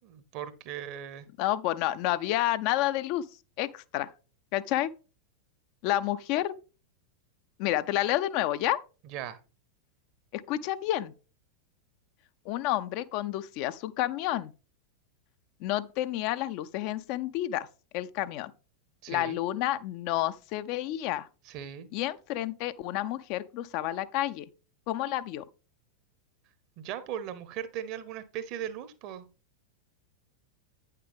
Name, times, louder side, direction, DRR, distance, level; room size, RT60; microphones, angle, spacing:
voice 1, 0.0-1.3 9.1-9.4 19.0-19.4 21.5-21.9 26.8-29.3, right 10 dB, 40° right, 0.9 m, -38 dB
voice 2, 1.4-3.2 3.6-4.1 4.5-4.9 5.8-6.5 7.6-8.8 10.3-11.1 12.5-14.5 15.6-17.7 17.9-18.5 19.1-21.3 21.9-24.5 24.9-25.4, left 14 dB, 45° left, 0.4 m, -30 dB
9.2 x 6.6 x 3.4 m
figure-of-eight pair, 90°, 0 cm